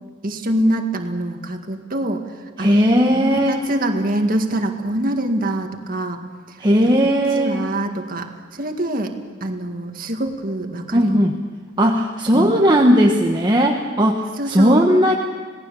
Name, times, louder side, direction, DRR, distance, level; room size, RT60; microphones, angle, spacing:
voice 1, 0.2-2.3 2.6-2.7 3.1-6.2 6.5-6.6 7.4-11.2 12.3-12.6 14.4-14.8, right 1 dB, 45° right, 4 dB, 1.9 m, -24 dB
voice 2, 2.6-3.7 6.6-7.6 10.9-11.3 11.8-15.1, equal, 20° right, 1 dB, 1.2 m, -17 dB
26.0 x 18.0 x 7.0 m, 1.5 s
head